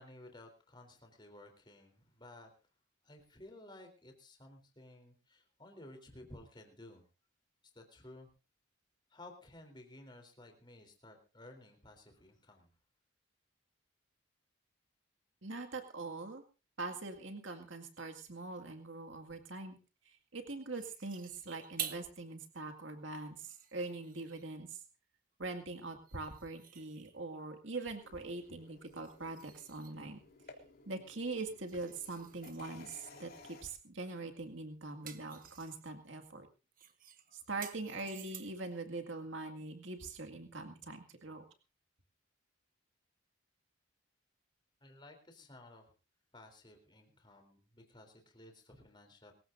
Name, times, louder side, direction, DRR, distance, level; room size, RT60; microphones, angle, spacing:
voice 1, 0.0-2.5 3.0-7.1 7.7-8.3 9.1-12.7 44.8-45.9 46.3-49.3, left 1 dB, 20° left, 4 dB, 3.6 m, -55 dB
voice 2, 15.4-16.4 16.8-19.8 20.1-24.8 25.4-30.2 30.9-36.5 37.3-41.4, right 3 dB, 70° right, 5 dB, 2.1 m, -43 dB
sound 1, 20.7-22.2 22.7-22.8 23.3-24.6 26.0-27.3 28.8-30.1 31.3-32.6 34.0-34.3 34.6-36.0 36.8-38.7, right 9 dB, 40° right, 1.2 m, -49 dB
sound 2, 28.0-33.6, left 3 dB, 50° left, 3.5 m, -57 dB
24.0 x 15.5 x 2.6 m, 0.32 s
head